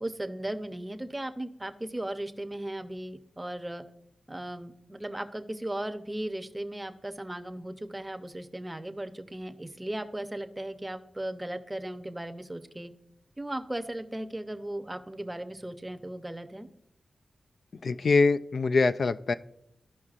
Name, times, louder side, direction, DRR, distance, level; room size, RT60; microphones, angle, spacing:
voice 1, 0.0-3.8 4.3-12.9 13.4-16.7, right 1 dB, 15° right, 8 dB, 0.6 m, -37 dB
voice 2, 17.8-19.3, left 3 dB, 60° left, 12 dB, 0.3 m, -24 dB
15.0 x 5.5 x 2.4 m, 0.79 s
wide cardioid pair, 105°, 0 cm